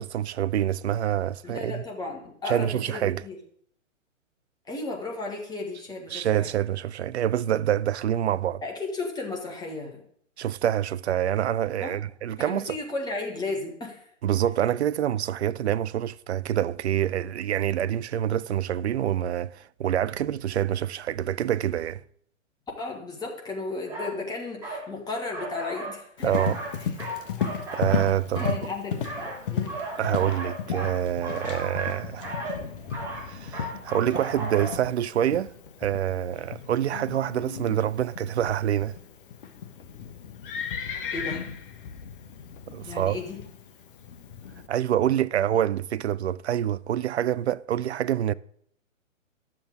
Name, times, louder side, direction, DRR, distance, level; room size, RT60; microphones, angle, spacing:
voice 1, 0.0-1.8 2.5-3.2 6.1-8.6 10.4-12.8 14.2-22.0 26.2-26.6 27.7-28.6 30.0-32.4 33.3-35.5 35.8-39.0 42.7-43.2 44.7-48.3, right 11 dB, 60° right, 0.5 m, -26 dB
voice 2, 1.4-3.4 4.6-6.5 8.6-10.0 11.8-12.0 12.5-14.1 22.8-26.5 28.3-29.7 41.1-41.5 42.8-43.4, left 3 dB, 10° left, 1.5 m, -34 dB
sound 1, 23.8-24.1 24.6-24.9 25.3-26.0 26.3-28.6 29.0-34.7, right 2 dB, 5° right, 4.2 m, -35 dB
Livestock farm animals working animals, 26.2-44.7, left 7 dB, 40° left, 1.2 m, -35 dB
12.0 x 7.4 x 3.8 m
figure-of-eight pair, 125°, 39 cm